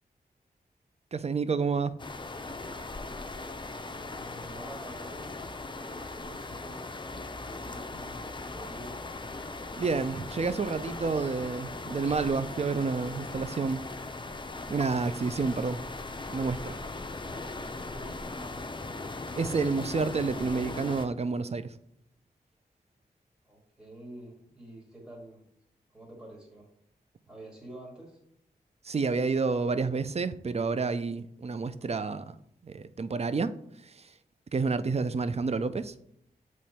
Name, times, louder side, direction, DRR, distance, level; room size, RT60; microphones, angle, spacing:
voice 1, 1.1-1.9 9.8-13.9 14.7-15.8 16.3-16.7 19.4-21.7 28.8-32.3 32.6-33.5 33.8-34.1 34.5-35.9, right 4 dB, 40° right, 0.4 m, -29 dB
sound 1, 2.0-21.1, left 3 dB, 30° left, 0.6 m, -39 dB
voice 2, 4.1-5.4 5.7-6.8 7.1-8.9 17.1-18.8 23.4-25.4 25.9-26.7 27.3-28.2, right 1 dB, 5° right, 1.8 m, -48 dB
7.4 x 3.1 x 4.2 m
cardioid pair, 45°, 17 cm